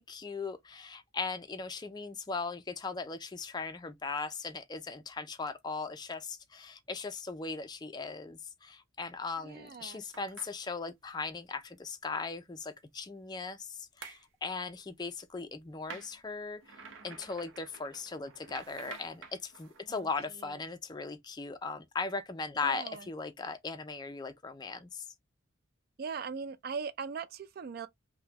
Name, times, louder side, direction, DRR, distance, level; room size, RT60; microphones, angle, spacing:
voice 1, 0.0-25.1, left 4 dB, 20° left, 0.4 m, -38 dB
voice 2, 9.4-10.0 19.9-20.1 20.4-20.5 22.6-23.0 26.0-27.9, right 5 dB, 50° right, 0.3 m, -40 dB
sound 1, 10.1-10.6 14.0-14.2 15.9-19.8, right 5 dB, 70° right, 0.7 m, -49 dB
3.5 x 2.1 x 2.8 m
head